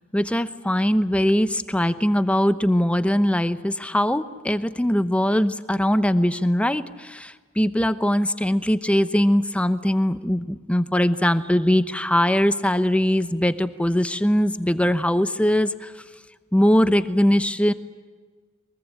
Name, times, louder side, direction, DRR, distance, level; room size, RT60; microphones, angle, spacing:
voice 1, 0.1-16.0 16.5-17.7, equal, 5° left, 12 dB, 0.9 m, -21 dB
23.5 x 22.5 x 10.0 m, 1.4 s
head